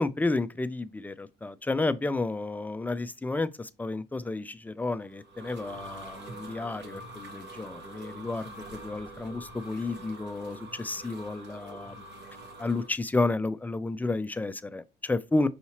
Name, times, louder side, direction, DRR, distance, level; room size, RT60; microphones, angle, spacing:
voice 1, 0.0-12.0 12.6-15.5, left 2 dB, 10° left, 0.3 m, -31 dB
sound 1, 4.9-12.9, right 1 dB, 60° right, 1.1 m, -45 dB
5.6 x 2.8 x 2.9 m
cardioid pair, 90°, 20 cm